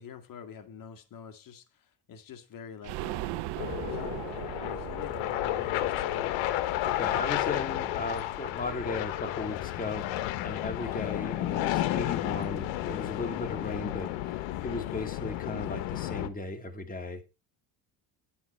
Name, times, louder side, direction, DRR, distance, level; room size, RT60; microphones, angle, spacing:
voice 1, 0.0-6.4, left 6 dB, 50° left, 1.9 m, -46 dB
sound 1, 2.8-8.5 8.8-8.9 9.2-9.3, right 18 dB, 65° right, 0.6 m, -40 dB
sound 2, 3.6-16.3, left 14 dB, 80° left, 1.2 m, -32 dB
voice 2, 6.8-14.1 14.6-17.2, left 3 dB, 20° left, 2.2 m, -36 dB
9.8 x 8.0 x 4.4 m
cardioid pair, 115°, 44 cm